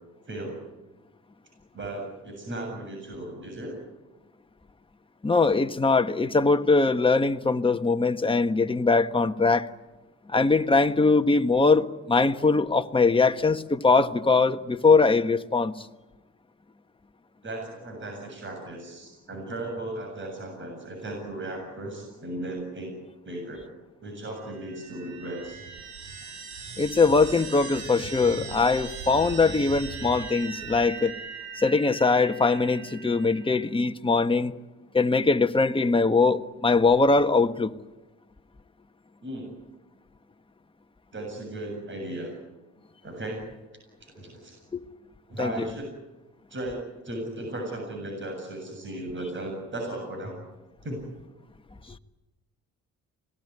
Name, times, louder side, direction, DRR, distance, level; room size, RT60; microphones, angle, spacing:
voice 1, 0.3-0.6 1.7-3.8 17.4-22.9 23.2-23.7 24.0-25.6 39.2-39.5 41.1-42.3 43.0-43.4 44.0-44.6 45.3-45.9 46.5-50.4 50.8-51.0, right 1 dB, 40° right, 7.5 m, -36 dB
voice 2, 5.2-9.7 10.3-15.9 26.8-31.1 31.5-34.5 34.9-37.7 44.7-44.8 45.4-45.7, left 3 dB, 15° left, 1.4 m, -22 dB
sound 1, 24.4-33.7, right 5 dB, 70° right, 4.3 m, -40 dB
26.5 x 19.0 x 9.7 m
cardioid pair, 90°, 30 cm